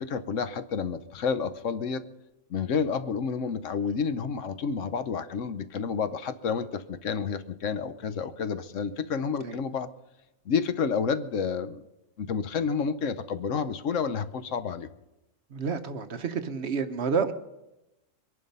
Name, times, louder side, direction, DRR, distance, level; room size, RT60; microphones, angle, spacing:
voice 1, 0.0-2.0 2.5-9.9 10.5-11.8 12.2-14.9, left 6 dB, 70° left, 12 dB, 1.1 m, -30 dB
voice 2, 15.5-17.3, right 6 dB, 55° right, 10 dB, 1.1 m, -29 dB
22.0 x 11.0 x 5.4 m, 0.96 s
omnidirectional pair, 1.4 m